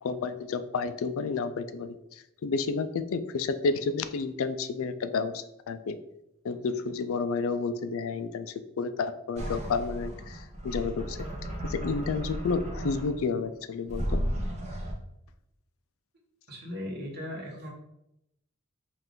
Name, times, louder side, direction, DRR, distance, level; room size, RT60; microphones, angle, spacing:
voice 1, 0.0-6.0 6.4-11.2 11.6-14.2, left 4 dB, 65° left, 11 dB, 0.4 m, -31 dB
sound 1, 9.4-13.3 13.9-14.9, equal, 30° right, 0.8 m, -34 dB
voice 2, 16.5-17.7, left 1 dB, 45° right, -2 dB, 1.3 m, -37 dB
5.5 x 2.5 x 3.6 m, 0.83 s
head